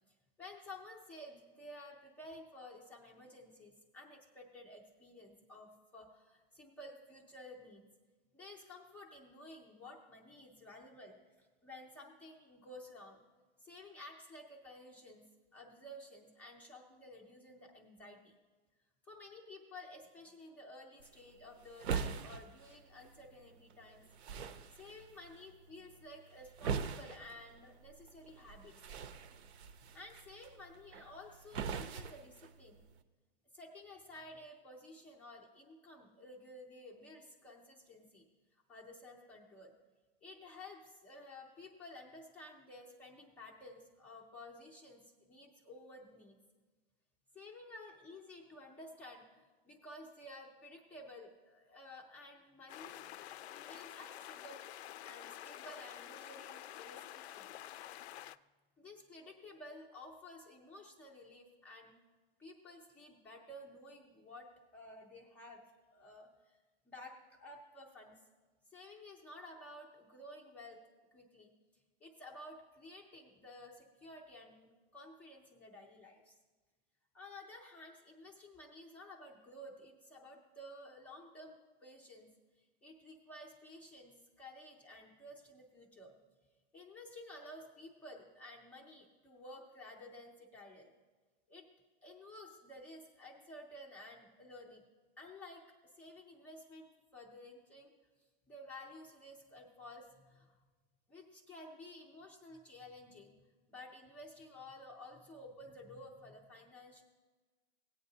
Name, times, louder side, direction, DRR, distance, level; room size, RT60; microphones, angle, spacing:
voice 1, 0.1-7.8 8.3-13.2 13.6-15.3 15.5-18.4 19.0-24.0 24.7-28.8 29.9-32.8 33.5-38.3 38.7-39.7 40.2-46.4 47.3-57.5 58.8-62.0 62.4-65.6 65.9-66.6 66.9-68.2 68.7-70.8 71.1-71.5 72.0-76.4 77.1-82.3 82.6-86.1 86.7-90.9 91.5-91.7 92.0-94.8 95.2-97.9 98.5-100.6 101.1-103.4 103.7-107.0, left 1 dB, 5° left, -1 dB, 0.4 m, -53 dB
sound 1, 21.0-33.0, right 6 dB, 90° right, 0.7 m, -44 dB
sound 2, 52.7-58.4, left 12 dB, 90° left, 0.5 m, -49 dB
17.5 x 8.6 x 2.7 m, 1.3 s
supercardioid pair, 165°, 31 cm